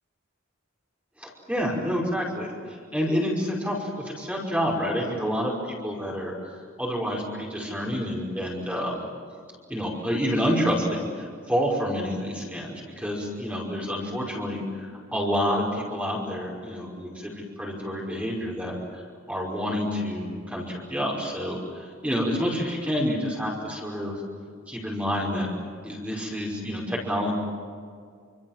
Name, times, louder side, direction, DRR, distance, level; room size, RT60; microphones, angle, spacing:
voice 1, 1.2-6.3 6.8-9.1 9.7-19.0 19.3-24.2 24.7-25.5 25.8-27.3, equal, 5° right, -3 dB, 5.3 m, -28 dB
27.5 x 26.5 x 7.4 m, 2.1 s
head